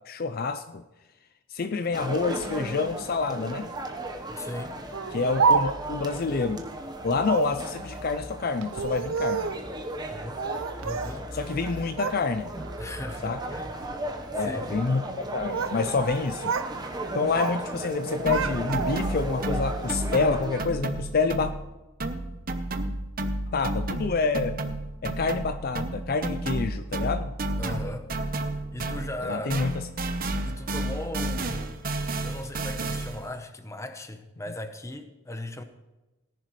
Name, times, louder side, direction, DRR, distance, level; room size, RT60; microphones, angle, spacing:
voice 1, 0.1-0.8 1.5-3.7 5.1-6.6 7.0-9.5 11.3-12.5 13.2-13.4 14.3-15.0 15.3-16.5 17.1-21.5 23.5-24.6 25.0-27.3 29.2-29.7, left 4 dB, 45° left, 0.5 m, -27 dB
sound 1, 1.9-20.7, right 1 dB, 20° right, 1.1 m, -36 dB
voice 2, 4.3-4.8 10.1-10.4 10.8-11.3 12.8-13.8 14.3-14.7 27.6-28.1 28.7-29.5 30.4-31.8 32.2-35.6, left 1 dB, 15° left, 0.9 m, -37 dB
Speech, 4.9-6.0 7.2-7.6 8.6-9.7 10.4-11.2 11.5-12.2 12.6-13.0 13.7-14.0 15.1-15.8 16.1-16.7 17.0-17.6 17.9-19.2, right 5 dB, 75° right, 0.6 m, -29 dB
sound 2, 18.3-21.7 22.0-29.2 29.5-33.3, right 2 dB, 45° right, 0.9 m, -31 dB
18.0 x 10.5 x 3.2 m
head